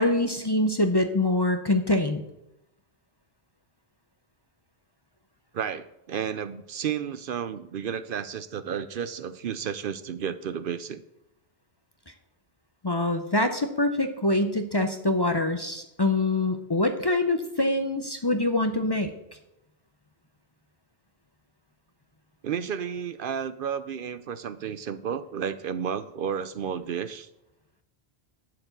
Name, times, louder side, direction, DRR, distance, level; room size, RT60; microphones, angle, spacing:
voice 1, 0.0-2.2 12.8-19.1, left 2 dB, 30° left, 7 dB, 0.6 m, -24 dB
voice 2, 5.5-11.0 22.4-27.3, right 8 dB, 65° right, 13 dB, 0.7 m, -32 dB
11.0 x 4.8 x 7.9 m, 0.86 s
omnidirectional pair, 1.1 m